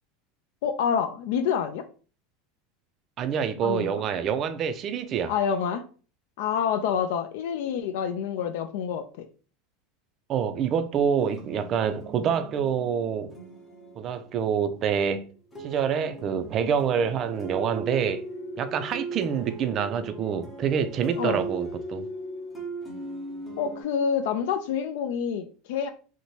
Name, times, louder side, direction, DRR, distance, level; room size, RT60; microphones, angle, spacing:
voice 1, 0.6-1.9 3.6-4.0 5.3-5.8 6.4-9.2 21.2-21.5 23.6-25.9, left 7 dB, 75° left, 0.3 m, -27 dB
voice 2, 3.2-5.3 10.3-13.3 14.0-15.3 15.6-18.2 18.6-22.1, right 7 dB, 40° right, 0.3 m, -26 dB
sound 1, 10.9-14.9 15.5-23.8, right 3 dB, 15° left, 0.8 m, -38 dB
2.7 x 2.1 x 3.0 m
supercardioid pair, 125°, 0 cm